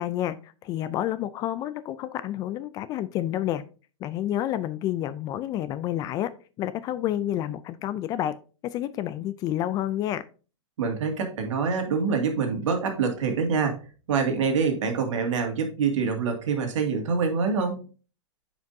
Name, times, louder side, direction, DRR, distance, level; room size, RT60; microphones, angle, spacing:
voice 1, 0.0-3.6 4.0-6.3 6.6-8.4 8.6-10.2, left 12 dB, 25° left, 14 dB, 0.3 m, -29 dB
voice 2, 10.8-13.8 14.1-17.9, right 5 dB, 70° right, 4 dB, 2.1 m, -25 dB
9.3 x 5.0 x 2.7 m, 0.36 s
hypercardioid pair, 135°, 16 cm